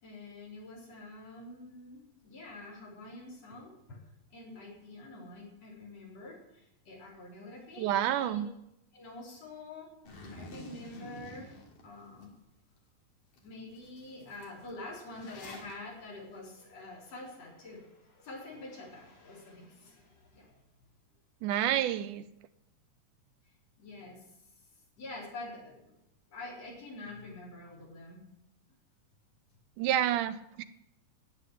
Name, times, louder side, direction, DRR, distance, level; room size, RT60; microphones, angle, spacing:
voice 1, 0.0-4.0 4.3-8.5 8.9-12.3 13.4-20.5 23.8-24.2 25.0-25.9 26.3-28.2, left 2 dB, 50° left, -3 dB, 5.1 m, -47 dB
voice 2, 7.8-8.5 21.4-22.2 29.8-30.6, right 11 dB, 80° right, 13 dB, 2.1 m, -29 dB
Zipper (clothing), 10.1-12.3 12.8-12.9 13.3-13.5 13.7-15.7, left 2 dB, 75° left, 4.4 m, -48 dB
12.5 x 8.4 x 10.0 m, 0.84 s
omnidirectional pair, 3.8 m